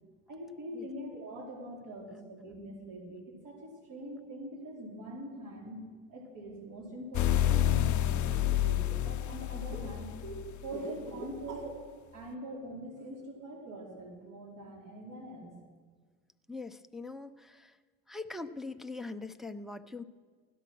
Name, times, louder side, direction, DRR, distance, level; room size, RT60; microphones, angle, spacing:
voice 1, 0.3-5.8 6.1-11.8 12.1-15.6, right 1 dB, 50° right, -3 dB, 4.7 m, -43 dB
sound 1, 7.1-10.7, left 12 dB, 50° left, 0.7 m, -29 dB
voice 2, 16.5-17.7 18.1-20.0, left 3 dB, ahead, 7 dB, 0.7 m, -42 dB
16.5 x 11.5 x 6.3 m, 1.6 s
supercardioid pair, 75°, 39 cm